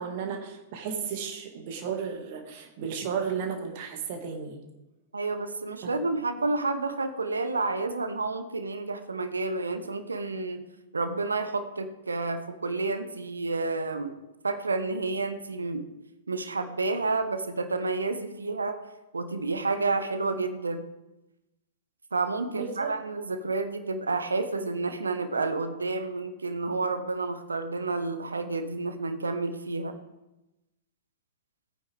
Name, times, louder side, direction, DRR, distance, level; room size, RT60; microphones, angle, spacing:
voice 1, 0.0-4.6 5.8-5.9 22.5-22.9, right 6 dB, 45° right, 3 dB, 2.1 m, -34 dB
voice 2, 5.1-10.6 10.9-14.2 14.4-15.9 16.3-18.8 19.1-20.8 22.1-30.0, right 3 dB, 75° right, 9 dB, 1.0 m, -30 dB
17.0 x 9.1 x 3.6 m, 0.99 s
figure-of-eight pair, 105°, 0 cm